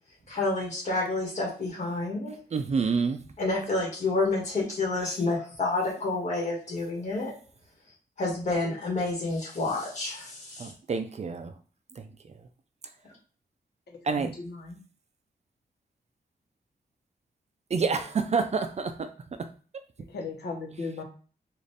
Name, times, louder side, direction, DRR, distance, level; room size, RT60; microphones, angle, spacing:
voice 1, 0.3-2.4 3.4-7.3 8.2-10.7, left 2 dB, 45° left, -4 dB, 1.8 m, -29 dB
voice 2, 2.5-3.2 10.6-11.5 12.0-12.1 14.1-14.3 17.7-19.1, right 5 dB, 45° right, 9 dB, 0.4 m, -28 dB
voice 3, 13.9-14.8 20.0-21.0, left 3 dB, 90° left, 0 dB, 0.9 m, -37 dB
3.9 x 2.5 x 3.3 m, 0.39 s
wide cardioid pair, 155°, 16 cm